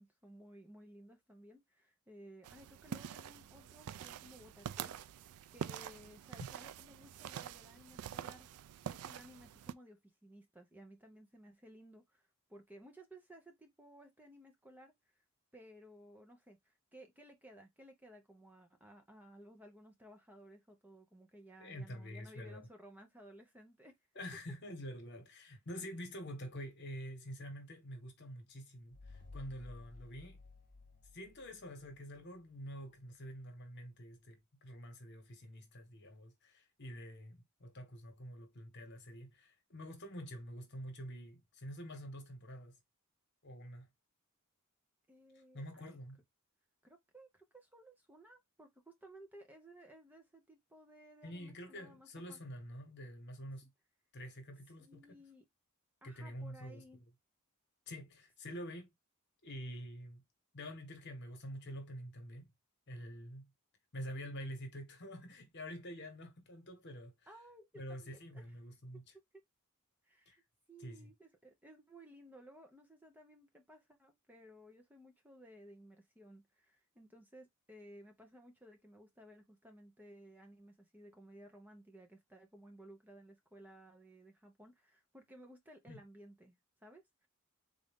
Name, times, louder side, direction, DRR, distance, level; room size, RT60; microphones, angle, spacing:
voice 1, 0.0-5.0 5.5-8.5 8.8-15.2 15.5-23.9 45.1-46.0 46.8-52.4 54.8-55.4 56.0-57.0 67.3-68.5 69.1-69.2 70.0-70.4 70.7-87.3, right 1 dB, 10° right, 0.6 m, -58 dB
sound 1, 2.4-9.7, right 9 dB, 85° right, 0.3 m, -46 dB
voice 2, 21.6-22.7 24.1-30.4 31.1-42.8 43.4-43.9 45.3-46.2 51.2-53.7 54.1-55.1 56.0-56.8 57.9-58.9 59.4-60.2 60.5-62.5 62.9-63.5 63.9-67.1 67.7-69.0 70.3-70.4 70.8-71.1 85.9-86.0, equal, 55° left, 1.2 m, -47 dB
sound 2, 28.9-32.3, left 3 dB, 35° left, 0.8 m, -55 dB
3.9 x 2.5 x 3.5 m
head